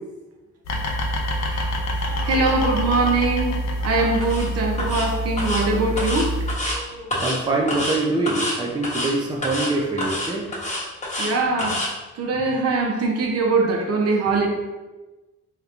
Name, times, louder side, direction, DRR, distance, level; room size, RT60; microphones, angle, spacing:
sound 1, 0.6-6.6, equal, 60° left, 0.6 m, -26 dB
voice 1, 1.3-1.9 7.2-10.5 13.4-13.8, right 2 dB, 15° right, -1 dB, 0.5 m, -25 dB
sound 2, 2.0-4.4 4.7-6.0 6.6-7.6, right 1 dB, 80° right, 1.1 m, -39 dB
voice 2, 2.2-3.6 3.8-6.3 6.7-6.8 11.2-11.8 12.1-14.5, right 3 dB, 55° right, 1 dB, 0.7 m, -22 dB
sound 3, 4.2-4.5 4.8-5.1 5.4-5.6 6.0-6.8 7.1-7.4 7.7-8.0 8.3-8.6 8.8-9.1 9.4-9.7 10.0-11.3 11.6-11.9, left 1 dB, 25° left, 1.1 m, -27 dB
3.4 x 2.8 x 2.5 m, 1.2 s
cardioid pair, 90°, 30 cm